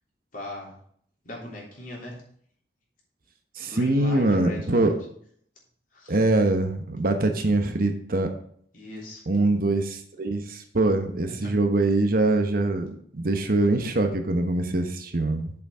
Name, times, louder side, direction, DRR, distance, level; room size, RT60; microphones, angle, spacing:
voice 1, 0.3-0.8 1.2-2.2 3.7-4.9 5.9-6.3 8.7-9.2 11.3-11.5, left 1 dB, 50° left, -3 dB, 3.2 m, -39 dB
voice 2, 3.6-4.9 6.1-8.3 9.3-12.9 13.1-15.5, right 2 dB, 55° right, 6 dB, 1.0 m, -23 dB
7.1 x 5.9 x 4.9 m, 0.62 s
head